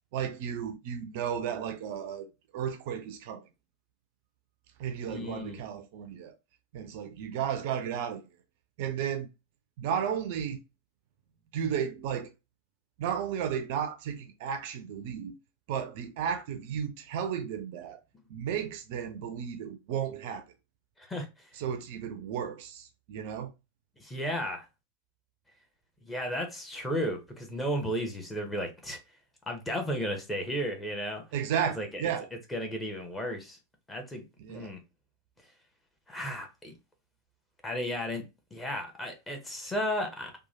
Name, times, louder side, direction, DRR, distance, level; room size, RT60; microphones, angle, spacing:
voice 1, 0.1-2.3 2.5-3.5 4.8-6.3 6.7-8.2 8.8-9.3 9.8-10.6 11.5-12.3 13.0-15.4 15.7-18.0 18.3-20.4 21.5-23.5 31.3-32.3 34.4-34.7, right 8 dB, 50° right, 0.4 m, -33 dB
voice 2, 5.1-5.6 21.1-21.3 24.0-24.6 26.1-29.0 29.5-31.2 31.8-31.9 32.5-33.6 33.9-34.2 34.5-34.8 36.1-36.7 37.6-38.2 38.5-40.3, equal, 10° left, 0.8 m, -33 dB
3.0 x 2.2 x 2.5 m
figure-of-eight pair, 90°, 0 cm